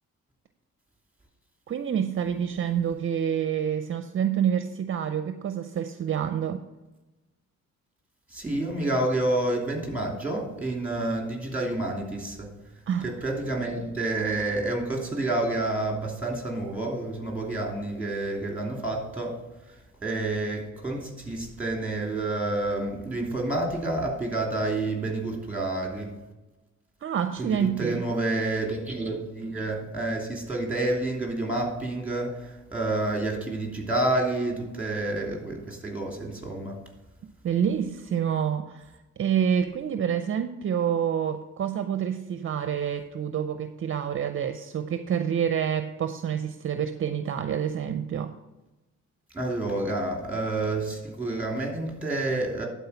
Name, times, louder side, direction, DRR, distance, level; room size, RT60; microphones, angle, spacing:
voice 1, 1.7-6.6 12.9-13.1 27.0-28.1 37.4-48.3, right 8 dB, 45° right, 9 dB, 0.5 m, -27 dB
voice 2, 8.3-12.5 13.0-19.4 20.0-26.1 27.4-36.8 49.3-52.7, right 2 dB, 5° right, 0 dB, 2.9 m, -29 dB
11.5 x 4.4 x 5.7 m, 1.1 s
cardioid pair, 90°, 30 cm